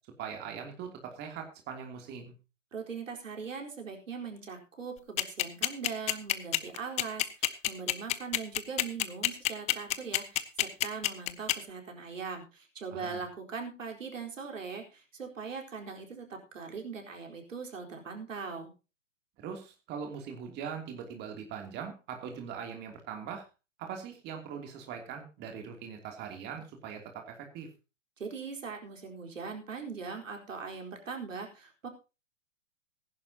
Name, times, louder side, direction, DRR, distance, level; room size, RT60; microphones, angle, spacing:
voice 1, 0.2-2.3 12.9-13.2 19.4-23.4 23.8-27.7, right 7 dB, 25° right, 3 dB, 2.9 m, -41 dB
voice 2, 2.7-18.7 28.2-31.9, right 5 dB, 80° right, 2 dB, 4.4 m, -41 dB
sound 1, 5.2-11.5, left 16 dB, 20° left, 0.7 m, -27 dB
19.5 x 11.0 x 2.9 m, 0.30 s
hypercardioid pair, 130°, 38 cm